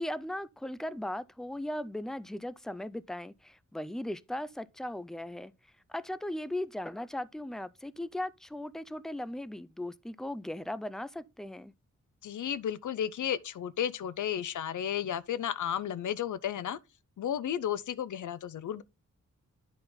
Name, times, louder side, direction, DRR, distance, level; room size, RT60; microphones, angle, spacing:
voice 1, 0.0-5.5 5.9-11.7, left 1 dB, ahead, 0.4 m, -38 dB
voice 2, 12.2-16.8 17.2-18.8, left 9 dB, 75° left, 0.5 m, -33 dB
9.9 x 4.3 x 3.7 m
wide cardioid pair, 105°, 31 cm